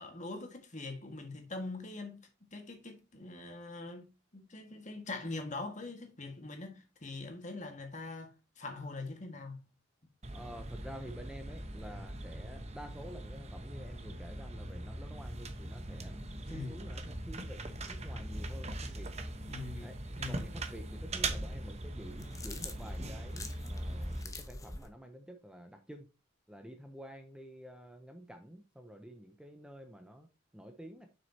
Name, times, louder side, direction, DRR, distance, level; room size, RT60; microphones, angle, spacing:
voice 1, 0.0-2.2 2.5-9.6 16.4-16.8 19.5-19.9 20.2-20.4, left 3 dB, 35° left, 1.6 m, -43 dB
sound 1, 10.2-24.2, right 2 dB, 30° right, 0.9 m, -41 dB
voice 2, 10.3-19.1 19.8-20.0 20.3-26.0 26.5-30.3 30.5-31.1, equal, 5° right, 0.6 m, -49 dB
sound 2, 22.0-24.9, left 2 dB, 15° left, 0.9 m, -45 dB
7.5 x 6.2 x 2.8 m
head